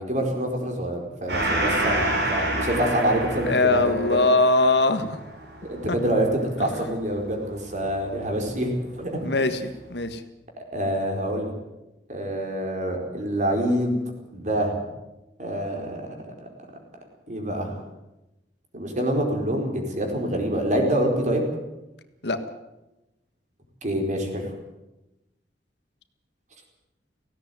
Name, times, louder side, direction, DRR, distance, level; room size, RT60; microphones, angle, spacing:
voice 1, 0.0-4.0 5.7-9.6 10.7-11.5 12.1-14.0 14.3-14.8 15.4-16.1 16.4-16.5 17.3-17.7 18.7-21.4 23.8-24.5, right 1 dB, 45° right, 3 dB, 4.6 m, -26 dB
Gong, 1.3-8.2, right 1 dB, 70° right, 6.5 m, -29 dB
voice 2, 3.4-5.2 5.9-6.0 6.6-6.7 9.2-10.2 22.2-22.4, left 2 dB, 70° left, 10 dB, 1.6 m, -21 dB
17.5 x 16.5 x 9.4 m, 0.98 s
head